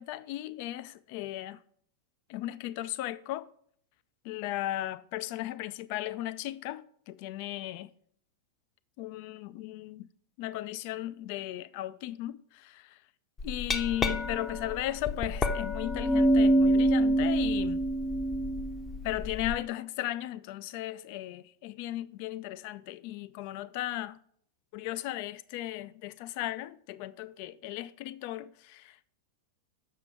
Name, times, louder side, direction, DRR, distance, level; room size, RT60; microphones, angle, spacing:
voice 1, 0.0-1.6 2.3-3.5 4.2-7.9 9.0-10.1 10.4-13.0 13.4-17.8 19.0-24.2 24.7-29.1, left 14 dB, 45° left, 0.4 m, -36 dB
Glass, 13.4-19.5, right 1 dB, 20° left, 0.7 m, -26 dB
7.5 x 6.6 x 4.8 m
figure-of-eight pair, 90°, 0 cm